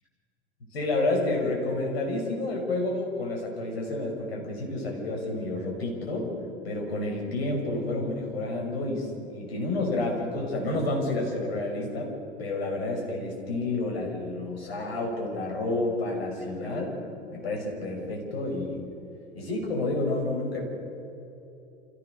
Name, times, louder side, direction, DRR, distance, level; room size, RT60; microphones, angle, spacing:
voice 1, 0.7-6.3 6.6-12.1 12.4-16.9 17.3-18.8 19.3-20.6, left 2 dB, 65° left, 0 dB, 6.3 m, -30 dB
28.0 x 15.5 x 6.8 m, 3.0 s
figure-of-eight pair, 85°, 33 cm